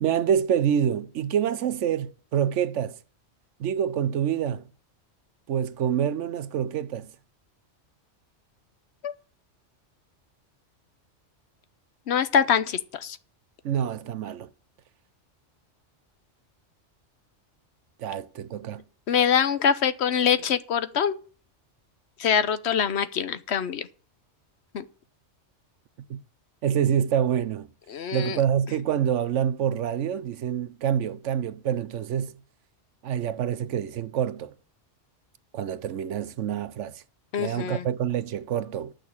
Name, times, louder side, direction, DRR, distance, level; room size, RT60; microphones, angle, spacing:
voice 1, 0.0-3.0 3.6-4.7 5.5-7.1 13.6-14.5 18.0-18.8 26.1-26.2 26.6-27.7 28.1-32.4 33.0-34.5 35.5-37.0 37.4-38.9, right 9 dB, 80° right, 1.0 m, -26 dB
voice 2, 12.1-13.2 19.1-21.2 22.2-23.9 24.7-24.8 27.9-28.4 37.3-37.9, left 7 dB, 65° left, 1.0 m, -24 dB
9.4 x 6.3 x 8.6 m
omnidirectional pair, 1.2 m